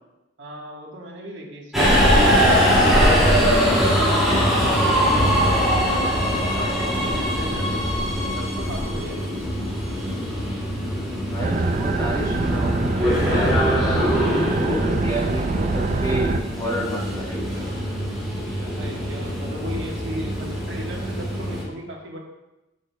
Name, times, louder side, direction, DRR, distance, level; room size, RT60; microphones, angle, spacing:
voice 1, 0.4-4.2 4.8-9.5 18.6-22.2, equal, 65° right, 0 dB, 1.3 m, -36 dB
Subway metro underground, 1.7-21.6, equal, ahead, 2.3 m, -22 dB
voice 2, 11.3-17.5, equal, 20° left, -4 dB, 1.3 m, -30 dB
sound 1, 11.4-16.4, right 3 dB, 35° right, 0.4 m, -24 dB
9.6 x 6.5 x 2.2 m, 0.97 s
head